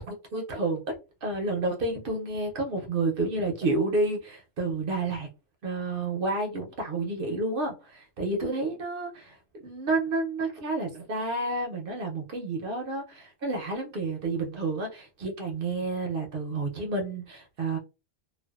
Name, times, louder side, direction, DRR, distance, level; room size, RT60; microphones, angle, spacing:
voice 1, 0.1-0.8 1.2-5.3 5.6-9.4 9.6-17.8, right 2 dB, 55° right, 0.7 m, -30 dB
2.5 x 2.2 x 2.2 m
omnidirectional pair, 1.3 m